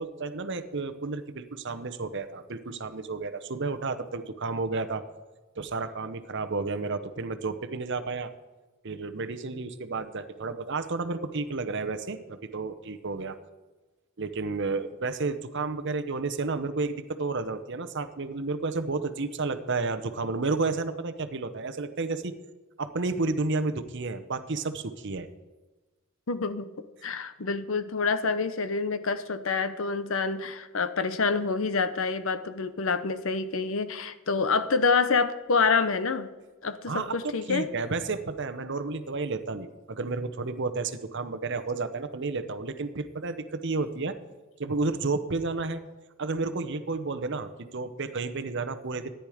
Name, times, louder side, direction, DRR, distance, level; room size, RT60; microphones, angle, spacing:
voice 1, 0.0-5.0 5.6-8.3 8.8-13.4 14.2-22.3 22.8-25.3 36.9-44.1 44.6-45.8 46.2-49.1, right 3 dB, 55° right, 10 dB, 0.8 m, -31 dB
voice 2, 26.3-36.3 36.6-37.7, left 4 dB, 60° left, 12 dB, 0.8 m, -27 dB
14.0 x 10.0 x 5.0 m, 1.2 s
head